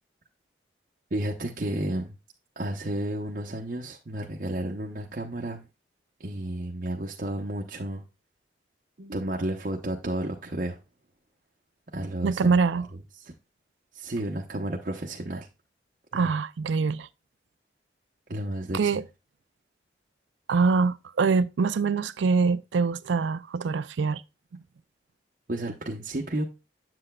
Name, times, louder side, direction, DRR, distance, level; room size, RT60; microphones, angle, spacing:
voice 1, 1.1-2.1 2.6-5.7 6.2-8.0 9.0-10.8 11.9-12.5 13.2-13.3 13.9-15.5 16.1-16.2 18.3-18.9 25.5-26.4, right 1 dB, 50° right, 0.8 m, -32 dB
voice 2, 12.2-12.9 16.1-17.1 18.7-19.0 20.5-24.2, right 4 dB, 90° right, 0.4 m, -24 dB
7.8 x 7.6 x 2.3 m
head